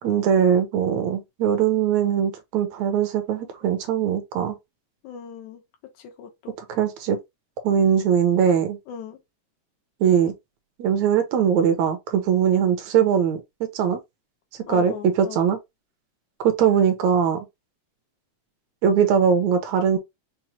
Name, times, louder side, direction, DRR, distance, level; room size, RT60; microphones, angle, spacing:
voice 1, 0.0-4.6 6.7-7.2 7.6-8.8 10.0-10.3 10.8-14.0 14.7-15.6 16.4-17.5 18.8-20.0, right 8 dB, 75° right, 2.0 m, -21 dB
voice 2, 5.0-5.6 6.0-6.5 8.9-9.2 14.7-15.4, left 8 dB, 80° left, 2.3 m, -38 dB
6.0 x 2.0 x 2.8 m
omnidirectional pair, 3.4 m